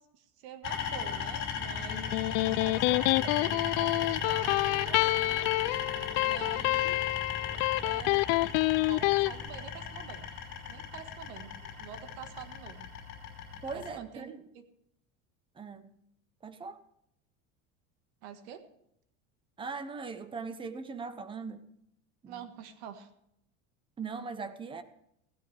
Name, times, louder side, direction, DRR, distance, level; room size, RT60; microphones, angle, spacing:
voice 1, 0.0-5.5 6.2-7.0 7.8-8.2 8.8-10.3 10.7-11.5 11.8-12.9 13.7-14.6 18.2-18.6 22.3-23.1, right 8 dB, 75° right, 8 dB, 1.7 m, -46 dB
sound 1, 0.6-13.9, left 6 dB, 40° left, 5.2 m, -37 dB
Electric guitar, 1.9-9.3, left 22 dB, 60° left, 0.5 m, -27 dB
voice 2, 2.2-2.7 13.6-14.4 15.5-16.0 16.4-16.8 19.6-21.7 22.2-22.5 24.0-24.8, right 4 dB, 15° right, 11 dB, 0.8 m, -40 dB
16.5 x 13.0 x 3.4 m, 0.74 s
cardioid pair, 155°, 34 cm